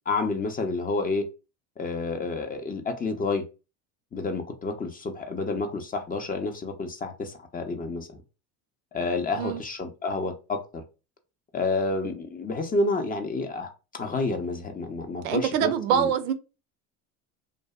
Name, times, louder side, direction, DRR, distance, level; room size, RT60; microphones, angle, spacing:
voice 1, 0.1-1.2 1.8-3.4 4.1-8.2 8.9-10.8 11.5-16.1, left 3 dB, 20° left, 0.5 m, -29 dB
voice 2, 15.2-16.3, right 9 dB, 80° right, 0.5 m, -24 dB
2.5 x 2.1 x 2.3 m
hypercardioid pair, 75°, 42 cm